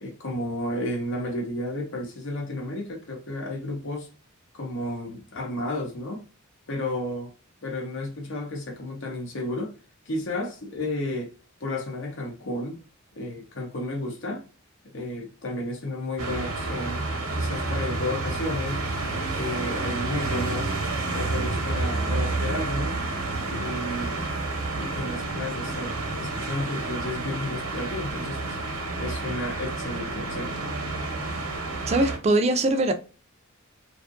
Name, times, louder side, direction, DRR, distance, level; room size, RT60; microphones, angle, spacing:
voice 1, 0.0-4.1 4.5-6.2 6.7-7.3 7.6-9.7 10.1-11.3 11.6-12.8 13.1-14.4 14.8-17.0 17.4-18.9 19.3-20.7 21.1-22.9 23.5-24.2 24.8-28.6 29.0-30.5, left 1 dB, 65° left, 0.7 m, -32 dB
sound 1, 16.2-32.2, right 3 dB, 85° right, 0.8 m, -29 dB
voice 2, 31.9-32.9, right 2 dB, 30° right, 0.4 m, -21 dB
2.6 x 2.4 x 2.5 m
head